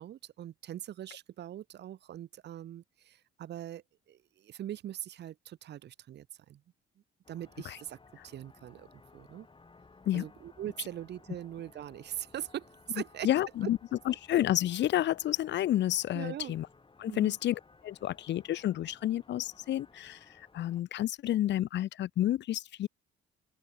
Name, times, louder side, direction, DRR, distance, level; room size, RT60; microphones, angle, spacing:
voice 1, 0.0-6.6 7.3-8.0 8.2-9.5 10.1-13.3 13.6-13.7 16.1-16.6 17.0-17.4, right 11 dB, 60° right, 0.7 m, -42 dB
sound 1, 7.2-20.8, left 3 dB, 25° left, 7.3 m, -59 dB
voice 2, 13.2-13.8 14.1-16.7 17.0-22.9, left 13 dB, 65° left, 0.6 m, -30 dB
open air
cardioid pair, 90°, 20 cm